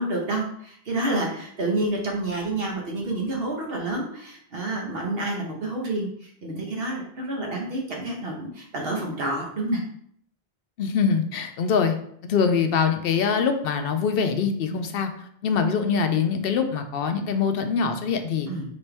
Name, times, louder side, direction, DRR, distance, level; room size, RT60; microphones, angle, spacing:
voice 1, 0.0-9.8 14.7-14.8 18.5-18.6, right 2 dB, 70° right, -1 dB, 1.3 m, -29 dB
voice 2, 10.8-11.9 12.2-15.1 15.4-18.5, left 6 dB, 70° left, 7 dB, 0.8 m, -23 dB
4.1 x 3.6 x 3.4 m, 0.65 s
omnidirectional pair, 1.0 m